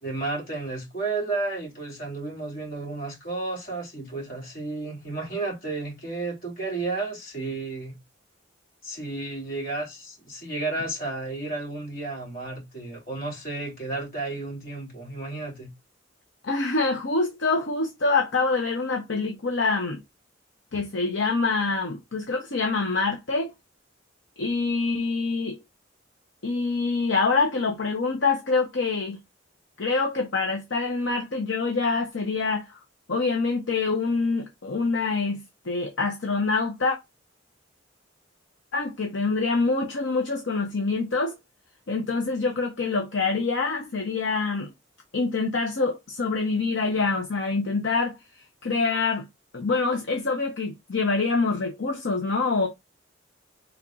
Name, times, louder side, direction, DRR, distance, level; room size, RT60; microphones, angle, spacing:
voice 1, 0.0-8.0 8.8-15.7, right 3 dB, 50° left, 3.0 m, -32 dB
voice 2, 16.4-20.0 20.7-23.5 24.4-25.6 26.4-29.2 29.8-32.7 33.1-37.0 38.7-41.4 41.9-44.7 45.1-48.2 48.6-49.3 49.5-52.7, left 3 dB, 70° left, 0.8 m, -25 dB
5.3 x 3.5 x 2.4 m
head